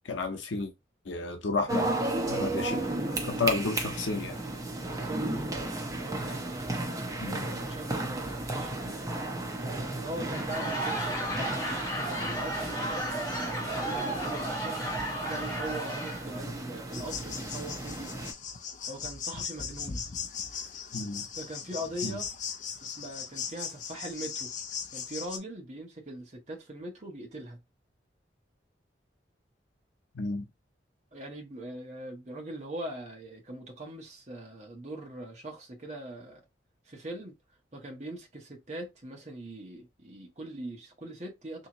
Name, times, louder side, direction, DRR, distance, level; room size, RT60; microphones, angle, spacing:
voice 1, 0.0-0.7 1.0-1.9 2.3-2.9 3.3-4.4 7.2-7.5 20.9-21.3 22.0-22.2 30.1-30.5, left 3 dB, 85° left, 0.7 m, -31 dB
sound 1, 1.7-18.3, right 2 dB, 20° right, 0.5 m, -34 dB
voice 2, 4.8-5.5 5.9-9.0 10.0-11.9 12.2-14.8 15.2-18.2 18.9-20.0 21.4-22.3 22.8-24.5 24.9-27.6 31.1-36.4 36.8-37.3 37.7-41.7, right 1 dB, 40° right, 1.0 m, -41 dB
Laughter / Crowd, 10.2-16.4, right 1 dB, 15° left, 1.2 m, -34 dB
sound 2, 16.9-25.4, left 7 dB, 40° left, 0.5 m, -38 dB
3.4 x 2.8 x 2.9 m
head